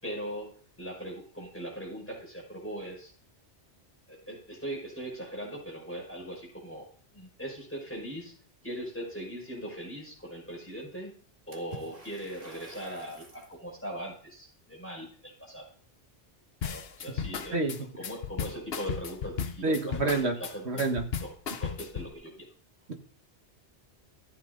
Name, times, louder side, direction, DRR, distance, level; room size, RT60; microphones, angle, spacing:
voice 1, 0.0-3.1 4.1-8.4 8.6-11.1 11.5-15.7 16.6-17.6 17.9-20.9 21.2-21.3 21.6-22.5, right 1 dB, 10° left, -3 dB, 5.8 m, -40 dB
Water / Splash splatter, 11.5-13.6, equal, 35° right, 2.4 m, -49 dB
sound 1, 16.6-22.1, left 7 dB, 65° left, 1.0 m, -35 dB
voice 2, 19.6-20.4 20.7-21.1, right 3 dB, 75° right, 4 dB, 1.8 m, -27 dB
14.5 x 8.6 x 3.9 m, 0.44 s
omnidirectional pair, 1.1 m